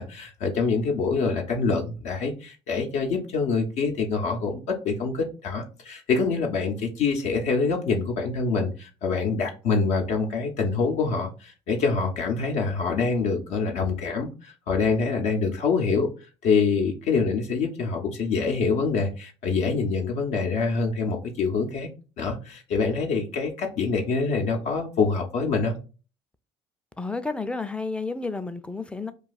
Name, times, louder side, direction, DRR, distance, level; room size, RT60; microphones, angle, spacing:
voice 1, 0.0-16.1 16.4-21.9 22.2-25.8, left 4 dB, 70° left, 0.6 m, -25 dB
voice 2, 27.0-29.1, left 3 dB, 10° left, 0.4 m, -31 dB
2.3 x 2.3 x 3.9 m
supercardioid pair, 75°, 13 cm